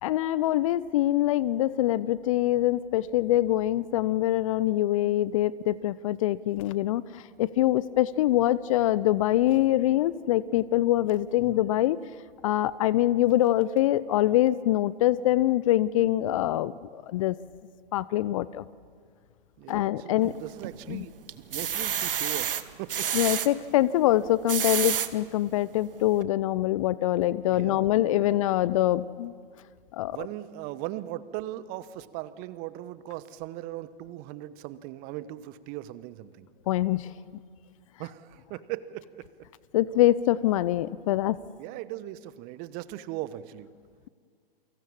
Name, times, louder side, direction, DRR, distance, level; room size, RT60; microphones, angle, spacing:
voice 1, 0.0-12.0 12.4-17.4 17.9-18.7 19.7-20.3 20.9-21.0 23.1-29.3 29.9-30.2 36.7-37.1 39.7-41.4, left 14 dB, 35° left, 20 dB, 0.6 m, -24 dB
voice 2, 19.6-23.1 27.5-28.4 30.1-36.5 38.0-39.3 41.6-43.7, right 14 dB, 30° right, 16 dB, 1.1 m, -39 dB
sound 1, 20.2-20.8 21.3-23.5 24.3-25.1 25.7-25.8 26.1-26.2, right 8 dB, 65° right, 1.5 m, -29 dB
29.5 x 24.0 x 7.4 m, 2.1 s
figure-of-eight pair, 115°, 30 cm